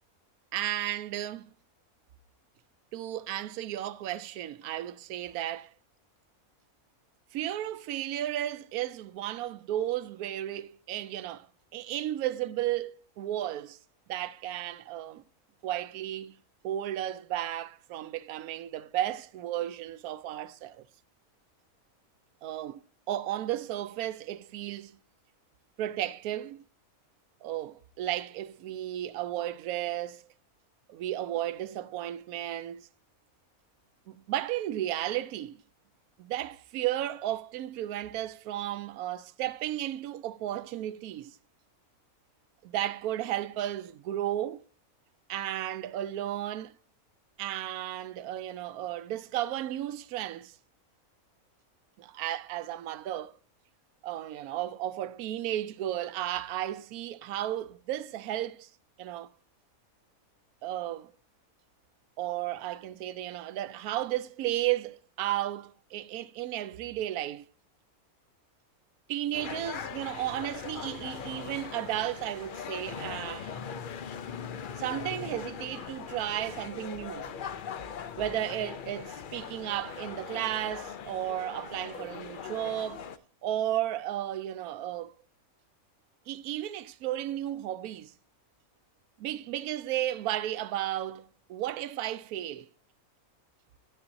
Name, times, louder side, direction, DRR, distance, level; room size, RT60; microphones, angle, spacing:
voice 1, 0.5-1.5 2.9-5.7 7.3-11.5 11.7-13.8 14.1-15.2 15.6-16.4 16.6-20.8 22.4-22.8 23.1-25.0 25.8-26.6 27.4-30.3 30.9-32.9 34.1-35.6 36.2-41.4 42.6-44.6 45.3-46.7 47.4-50.6 52.0-53.3 54.0-58.7 59.0-59.3 60.6-61.1 62.2-67.5 69.1-73.6 74.8-77.3 78.2-83.1 83.4-85.1 86.3-88.1 89.2-92.7, right 13 dB, 80° right, 1.0 m, -34 dB
sound 1, 69.3-83.2, left 7 dB, 65° left, 0.5 m, -40 dB
9.8 x 8.8 x 2.6 m
omnidirectional pair, 1.5 m